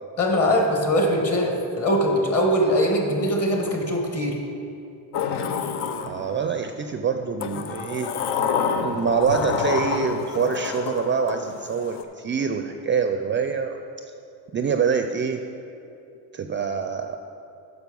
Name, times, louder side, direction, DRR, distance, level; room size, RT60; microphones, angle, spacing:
voice 1, 0.2-4.4, equal, 35° left, 1 dB, 1.8 m, -22 dB
Sliding door, 5.1-6.6 7.4-12.0, left 6 dB, 80° left, 0.7 m, -28 dB
voice 2, 6.1-8.1 8.8-14.1 14.5-15.4 16.3-17.2, right 6 dB, 30° right, 7 dB, 0.4 m, -25 dB
9.3 x 6.4 x 5.3 m, 2.7 s
cardioid pair, 100°, 40 cm